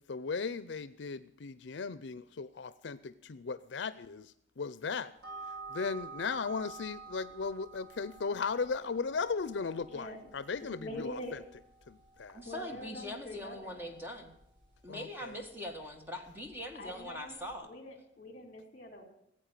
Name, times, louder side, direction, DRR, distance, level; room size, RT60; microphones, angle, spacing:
voice 1, 0.1-5.1 5.7-11.4 11.9-12.4 14.9-15.3, left 5 dB, 75° left, 14 dB, 0.5 m, -37 dB
sound 1, 5.2-17.6, right 4 dB, 75° right, 4.2 m, -51 dB
voice 2, 10.6-11.4 12.4-13.8 16.7-17.4 17.6-19.0, left 1 dB, 40° left, 4 dB, 3.9 m, -44 dB
voice 3, 12.3-14.3 14.8-17.7, left 1 dB, 10° right, 4 dB, 1.7 m, -42 dB
16.0 x 8.6 x 9.1 m, 0.77 s
head